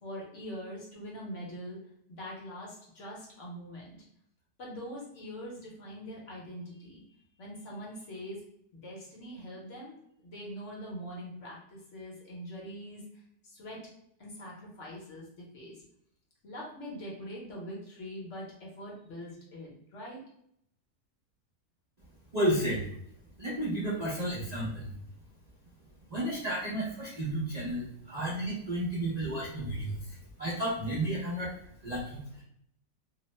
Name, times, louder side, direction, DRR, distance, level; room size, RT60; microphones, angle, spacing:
voice 1, 0.0-1.8 2.1-4.0 4.6-7.0 7.4-8.4 8.7-13.8 14.2-15.8 16.4-20.2, equal, 55° left, -4 dB, 1.0 m, -43 dB
voice 2, 22.3-22.9 23.4-24.9 26.1-29.9 30.4-31.5 31.8-32.4, right 1 dB, 65° right, -8 dB, 0.4 m, -32 dB
2.8 x 2.0 x 3.0 m, 0.71 s
omnidirectional pair, 1.8 m